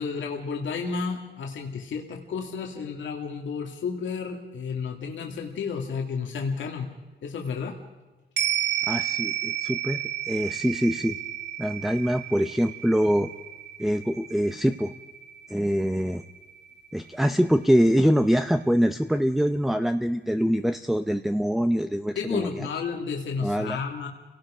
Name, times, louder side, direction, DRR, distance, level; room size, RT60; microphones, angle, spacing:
voice 1, 0.0-6.9 7.2-7.8 22.2-24.1, left 5 dB, 85° left, 2 dB, 2.1 m, -32 dB
sound 1, 8.4-16.9 17.3-17.4, right 11 dB, 65° right, 2.2 m, -32 dB
voice 2, 8.9-11.2 11.6-13.3 13.8-14.9 15.5-16.2 16.9-22.7 23.4-23.8, equal, ahead, 8 dB, 0.6 m, -24 dB
28.5 x 18.0 x 5.0 m, 1.2 s
wide cardioid pair, 135°, 19 cm